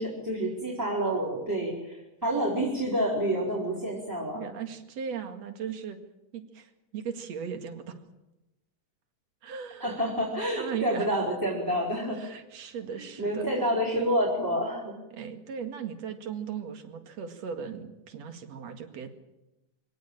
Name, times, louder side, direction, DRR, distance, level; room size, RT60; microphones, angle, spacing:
voice 1, 0.0-4.5 9.8-12.2 13.0-14.9, equal, 5° right, -1 dB, 4.0 m, -28 dB
voice 2, 4.3-6.0 6.3-8.0 9.4-10.0 10.5-11.1 12.1-13.5 15.1-19.1, right 7 dB, 50° right, 7 dB, 2.8 m, -37 dB
24.5 x 17.5 x 8.9 m, 0.97 s
omnidirectional pair, 4.3 m